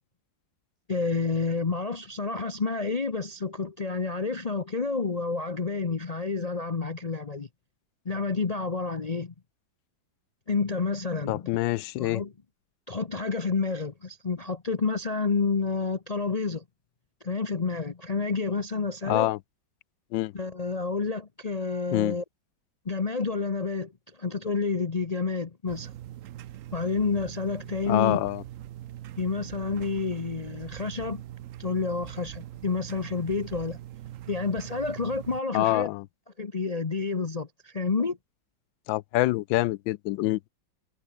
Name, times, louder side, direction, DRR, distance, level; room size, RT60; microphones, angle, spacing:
voice 1, 0.9-7.5 8.0-9.3 10.5-11.5 12.0-12.3 12.9-16.6 17.2-19.3 20.3-22.2 22.8-23.9 24.2-25.9 26.7-28.2 29.2-31.2 31.6-33.8 34.3-35.9 36.4-38.2, left 4 dB, 50° left, 0.4 m, -29 dB
voice 2, 11.3-12.2 19.1-19.4 20.1-20.3 21.9-22.2 27.9-28.4 35.5-36.0 38.9-40.5, left 17 dB, 85° left, 1.3 m, -26 dB
sound 1, 25.7-35.4, right 13 dB, 80° right, 0.7 m, -42 dB
omnidirectional pair, 2.1 m